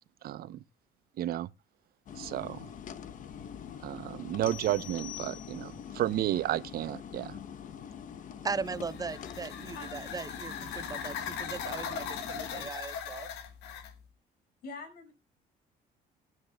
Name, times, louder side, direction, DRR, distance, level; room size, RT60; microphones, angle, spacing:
voice 1, 0.2-0.6 1.2-1.5 2.2-2.6 3.8-7.4, right 13 dB, 65° right, 0.7 m, -32 dB
sound 1, 2.1-12.7, left 8 dB, 50° left, 0.9 m, -45 dB
sound 2, 4.4-5.9, left 13 dB, 25° left, 2.1 m, -45 dB
voice 2, 8.4-13.3, right 4 dB, 20° right, 0.5 m, -38 dB
sound 3, 8.7-14.0, left 7 dB, 90° left, 1.7 m, -39 dB
voice 3, 14.6-15.1, left 3 dB, 70° left, 5.8 m, -45 dB
21.5 x 9.5 x 2.3 m
cardioid pair, 110°, 17 cm